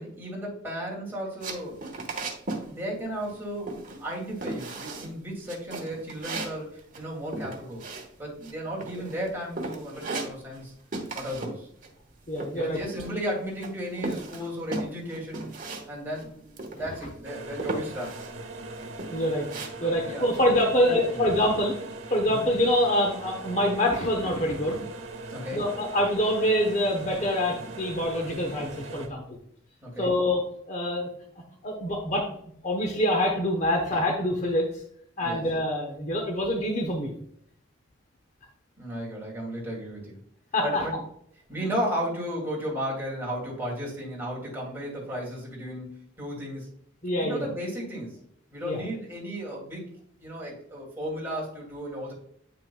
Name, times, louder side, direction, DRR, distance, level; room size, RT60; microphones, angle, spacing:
voice 1, 0.0-1.8 2.7-7.8 8.2-10.7 11.1-11.7 12.5-15.5 15.9-16.5 16.8-18.1 19.8-20.5 20.8-21.2 22.2-22.5 25.3-25.6 29.8-30.1 35.2-35.4 38.8-40.2 40.6-41.0 41.5-46.7 47.2-48.2 48.5-52.1, equal, 10° right, -4 dB, 2.4 m, -34 dB
sound 1, 1.4-2.7 3.0-3.4 3.7-4.1 4.4-5.1 5.5-8.5 8.8-9.3 9.6-10.7 10.9-11.6 11.8-13.3 13.6-15.9 16.1-16.2 16.6-17.1 17.6-18.3 18.7-19.7, right 2 dB, 40° right, 1.2 m, -36 dB
voice 2, 12.3-12.8 19.1-19.5 19.8-21.8 22.1-24.8 25.5-29.4 30.0-30.4 30.7-31.1 31.6-32.3 32.6-34.7 35.2-37.1 40.5-40.9 47.0-47.5 48.6-48.8, left 1 dB, 35° left, 2 dB, 1.0 m, -25 dB
sound 2, 17.2-29.1, right 2 dB, 65° right, 1.3 m, -40 dB
8.9 x 5.7 x 2.3 m, 0.67 s
head